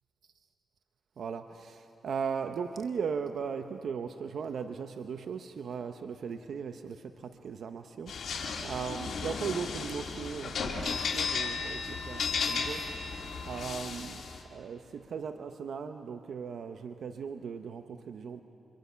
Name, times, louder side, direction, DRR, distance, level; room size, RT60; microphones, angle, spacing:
voice 1, 1.2-12.9 13.5-14.2 14.5-18.4, right 6 dB, 75° right, 8 dB, 0.8 m, -38 dB
sound 1, 8.1-14.4, left 5 dB, 70° left, 2.7 m, -34 dB
26.0 x 23.0 x 5.7 m, 2.8 s
cardioid pair, 60°, 0 cm